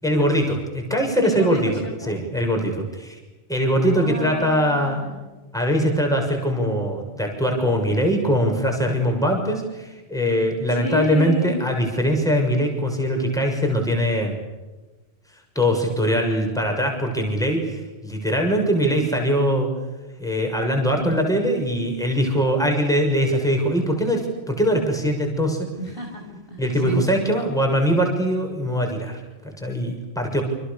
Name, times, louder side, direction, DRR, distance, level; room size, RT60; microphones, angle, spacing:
voice 1, 0.0-1.7 2.0-3.2 3.5-5.0 5.5-14.4 15.5-19.7 20.2-25.8 26.6-30.4, equal, 5° left, 2 dB, 6.7 m, -22 dB
voice 2, 0.9-2.1 3.8-5.1 10.8-11.6 21.0-21.2 25.8-27.3, left 1 dB, 50° left, 1 dB, 6.6 m, -31 dB
29.0 x 27.5 x 6.8 m, 1.2 s
omnidirectional pair, 1.2 m